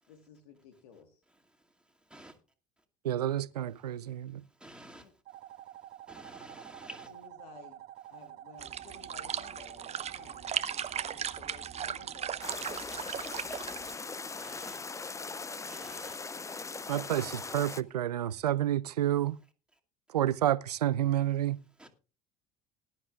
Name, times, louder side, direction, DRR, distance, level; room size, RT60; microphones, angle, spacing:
voice 1, 0.1-1.2 4.9-5.1 7.1-7.8 8.1-13.5 14.6-14.8, left 6 dB, 75° left, 1.6 m, -56 dB
voice 2, 1.3-2.4 3.8-7.3 10.2-10.3 10.7-10.9 12.9-13.1 13.4-16.2 21.8-21.9, right 1 dB, 5° right, 2.4 m, -54 dB
voice 3, 3.0-4.4 16.9-19.4 20.1-21.6, right 12 dB, 85° right, 0.5 m, -29 dB
sound 1, 5.3-12.5, right 12 dB, 55° right, 1.3 m, -49 dB
sound 2, 8.6-13.9, right 8 dB, 35° right, 0.8 m, -37 dB
sound 3, 12.4-17.8, left 4 dB, 15° left, 0.6 m, -40 dB
19.5 x 11.0 x 2.5 m
hypercardioid pair, 65°, 20 cm